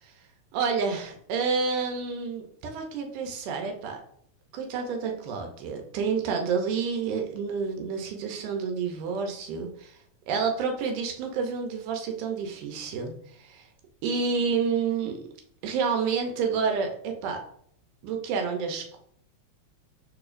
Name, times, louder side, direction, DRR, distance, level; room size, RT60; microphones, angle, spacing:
voice 1, 0.5-4.0 4.5-10.0 10.3-13.7 14.0-15.2 15.6-17.4 18.0-19.0, right 5 dB, 80° right, 3 dB, 2.3 m, -29 dB
4.9 x 4.3 x 2.5 m, 0.66 s
omnidirectional pair, 3.6 m